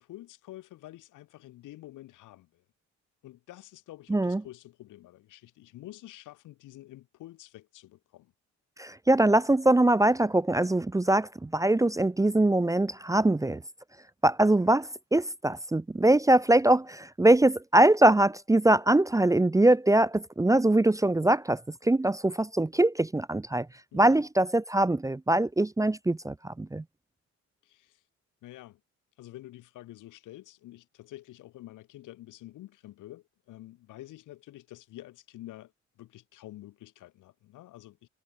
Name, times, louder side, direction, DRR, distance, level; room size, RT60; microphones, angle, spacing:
voice 1, 0.0-2.6 3.2-8.3 23.9-24.3 27.6-28.0 28.4-28.8 29.2-35.7 36.0-38.1, left 15 dB, 85° left, 4.0 m, -48 dB
voice 2, 4.1-4.4 8.8-13.6 14.2-23.7 23.9-26.8, right 1 dB, 10° right, 0.6 m, -23 dB
cardioid pair, 90°, 30 cm